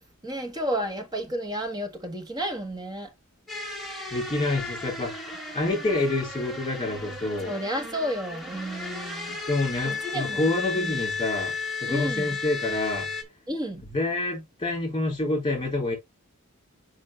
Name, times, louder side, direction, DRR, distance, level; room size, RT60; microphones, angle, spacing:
voice 1, 0.2-3.1 7.5-9.4 9.8-10.4 10.8-11.0 11.9-12.4 13.5-13.8, right 1 dB, 20° right, 1.5 m, -31 dB
sound 1, 3.5-13.2, left 4 dB, ahead, 1.7 m, -34 dB
voice 2, 4.1-5.2 5.5-7.5 9.5-11.5 11.8-13.1 13.8-15.9, left 2 dB, 20° left, 4.2 m, -27 dB
6.1 x 5.3 x 3.2 m
head